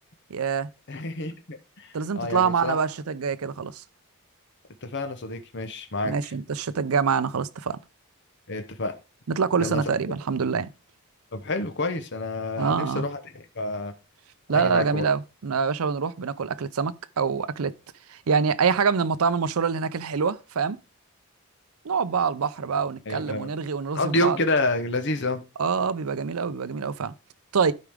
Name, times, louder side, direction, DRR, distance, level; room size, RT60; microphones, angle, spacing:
voice 1, 0.3-0.7 1.9-3.8 6.0-7.8 9.3-10.7 12.6-13.1 14.5-17.7 18.1-20.8 21.8-24.4 25.6-27.1 27.5-27.7, right 5 dB, 75° right, 0.6 m, -25 dB
voice 2, 0.9-1.4 1.8-2.8 4.8-6.1 8.5-8.9 9.6-9.8 11.3-13.9 14.5-15.0 23.1-23.5 23.9-25.4, left 2 dB, 50° left, 0.9 m, -28 dB
11.5 x 4.8 x 3.6 m
head